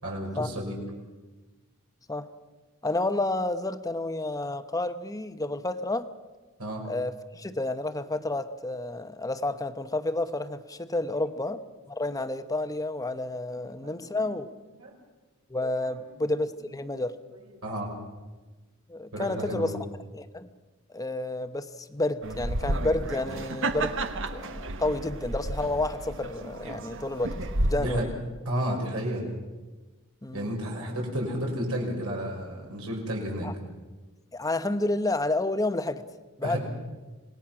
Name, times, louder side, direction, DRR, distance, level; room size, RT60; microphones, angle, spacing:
voice 1, 0.0-0.8 6.6-6.8 11.3-11.4 13.5-14.3 14.8-15.0 15.8-15.9 17.6-17.9 19.1-19.7 27.7-28.1 28.4-29.3 30.3-33.5 36.4-36.6, equal, 80° right, 0 dB, 5.8 m, -32 dB
voice 2, 2.8-6.1 6.9-11.6 11.9-14.5 15.5-17.2 18.9-19.8 20.1-20.5 20.9-24.0 24.3-27.4 27.6-28.0 30.2-30.5 33.4-33.5 34.3-36.0 36.4-36.6, left 2 dB, 15° left, 10 dB, 0.9 m, -30 dB
sound 1, 22.2-27.7, right 2 dB, 60° right, 1.3 m, -31 dB
26.5 x 19.5 x 6.1 m, 1.2 s
head